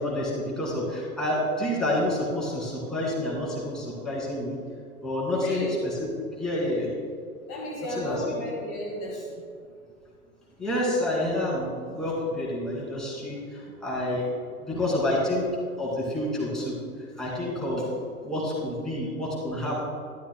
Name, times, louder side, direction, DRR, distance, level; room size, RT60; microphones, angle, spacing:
voice 1, 0.0-4.6 5.0-5.6 6.4-6.9 7.9-8.4 10.6-13.4 13.8-14.2 14.6-15.4 15.8-16.7 17.2-17.8 18.2-19.7, left 1 dB, ahead, -7 dB, 2.4 m, -28 dB
voice 2, 5.4-5.8 7.5-9.4 13.5-13.6 14.7-14.9, left 1 dB, 30° left, -4 dB, 1.7 m, -34 dB
12.5 x 11.5 x 2.2 m, 2.2 s
figure-of-eight pair, 105°, 44 cm